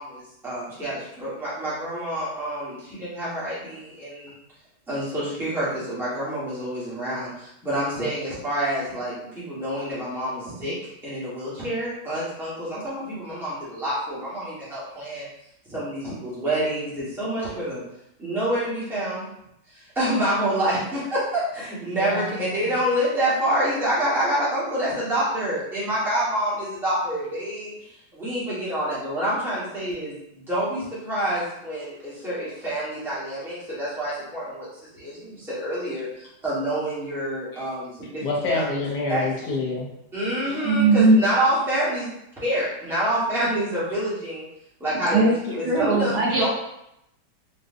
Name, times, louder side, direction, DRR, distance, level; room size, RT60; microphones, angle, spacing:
voice 1, 0.0-4.4 4.9-10.7 11.0-15.3 15.6-17.8 18.2-19.2 19.7-34.7 34.9-38.7 39.1-39.3 40.1-42.1 42.4-44.4 44.8-46.5, right 1 dB, ahead, -10 dB, 1.1 m, -27 dB
voice 2, 21.9-22.6 37.5-37.7 38.2-39.9 40.5-40.7, left 3 dB, 80° left, -2 dB, 1.4 m, -28 dB
voice 3, 40.6-41.2 45.1-45.3 45.6-46.5, right 3 dB, 70° right, -4 dB, 1.4 m, -18 dB
3.8 x 2.5 x 2.6 m, 0.80 s
omnidirectional pair, 1.8 m